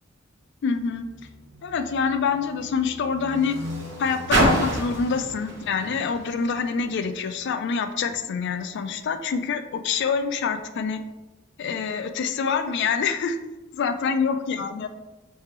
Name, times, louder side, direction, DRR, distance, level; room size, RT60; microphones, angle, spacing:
voice 1, 0.6-1.1 1.6-3.6 4.0-11.0 11.6-13.4 13.7-14.9, left 5 dB, 60° left, 9 dB, 0.3 m, -26 dB
Car, 0.7-7.3 8.1-8.2, right 1 dB, 60° right, 1.1 m, -29 dB
3.2 x 3.2 x 3.2 m, 1.1 s
head